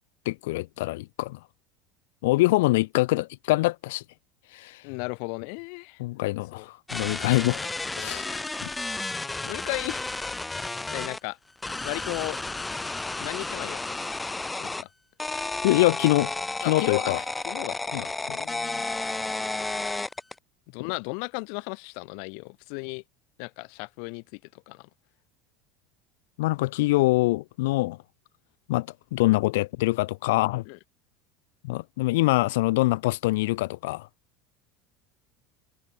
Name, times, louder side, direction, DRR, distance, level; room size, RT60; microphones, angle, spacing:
voice 1, 0.3-1.4 2.2-4.0 4.5-4.8 6.0-7.6 8.0-8.4 15.6-16.3 16.6-17.2 17.9-18.4 20.8-20.9 26.4-28.0 28.7-30.6 31.6-34.1, left 20 dB, 85° left, 2.5 m, -24 dB
voice 2, 4.8-6.0 6.5-6.7 9.4-10.1 10.6-11.4 11.8-12.4 13.2-14.0 14.6-14.9 16.6-18.1 18.4-18.8 20.7-23.0 23.4-24.2 24.7-24.9 30.7-30.8, left 40 dB or more, 55° left, 7.9 m, -35 dB
sound 1, 6.9-11.2 11.6-14.8 15.2-20.4, left 2 dB, 5° left, 2.2 m, -32 dB
cardioid pair, 170°, 0 cm